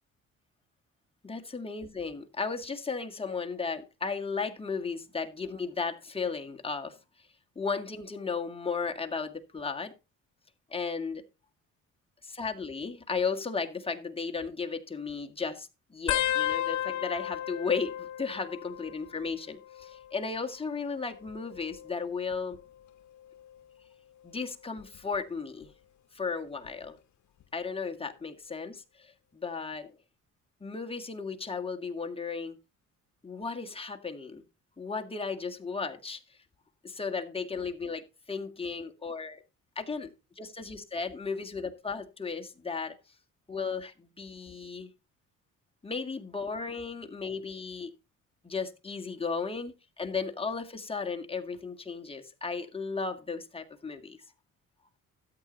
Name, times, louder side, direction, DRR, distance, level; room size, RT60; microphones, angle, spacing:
voice 1, 1.2-7.0 7.6-9.9 10.7-11.2 12.2-22.6 24.2-25.7 26.1-27.0 27.5-29.9 30.6-32.6 33.2-34.4 34.8-36.2 36.8-39.4 39.8-43.0 43.5-44.9 45.8-47.9 48.4-54.2, left 5 dB, 20° left, 1.9 m, -35 dB
sound 1, 16.1-19.3 19.5-20.1 21.1-22.6 23.2-23.6 24.8-25.2 26.7-26.8, left 12 dB, 70° left, 0.9 m, -34 dB
13.5 x 8.5 x 4.0 m
cardioid pair, 90°, 30 cm